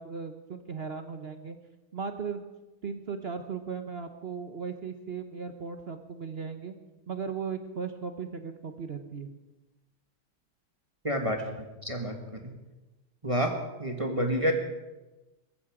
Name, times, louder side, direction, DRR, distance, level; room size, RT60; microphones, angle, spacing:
voice 1, 0.0-1.6 1.9-2.4 2.8-6.7 7.1-9.3, right 5 dB, 50° right, 7 dB, 0.7 m, -37 dB
voice 2, 11.0-11.4 11.8-12.4 13.2-13.5 13.8-14.5, equal, 15° right, 3 dB, 1.4 m, -28 dB
20.0 x 14.5 x 5.0 m, 1.1 s
omnidirectional pair, 2.4 m